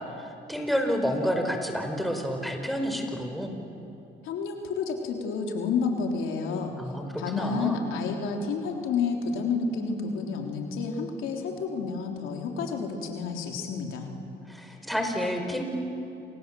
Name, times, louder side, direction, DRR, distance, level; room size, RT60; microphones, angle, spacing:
voice 1, 0.2-3.5 6.8-7.8 14.5-15.6, equal, ahead, 4 dB, 5.1 m, -29 dB
voice 2, 4.2-6.7 7.2-14.1, left 5 dB, 90° left, 2 dB, 3.6 m, -30 dB
28.5 x 27.0 x 7.8 m, 2.9 s
cardioid pair, 90°, 20 cm